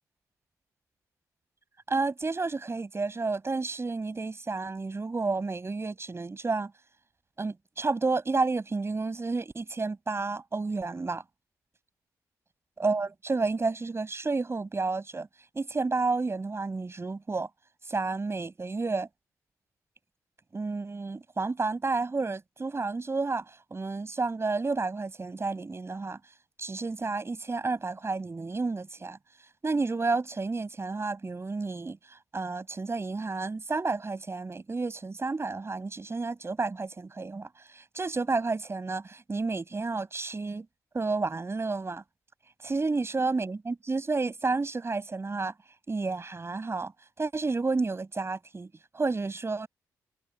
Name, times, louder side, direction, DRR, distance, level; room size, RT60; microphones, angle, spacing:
voice 1, 1.9-6.7 7.4-11.2 12.8-15.3 15.5-17.5 17.9-19.1 20.5-23.4 23.7-26.2 26.6-29.2 29.6-32.0 32.3-40.7 40.9-42.0 42.6-45.5 45.9-46.9 47.2-49.7, right 3 dB, 35° right, 7.1 m, -31 dB
supercardioid pair, 45°, 8 cm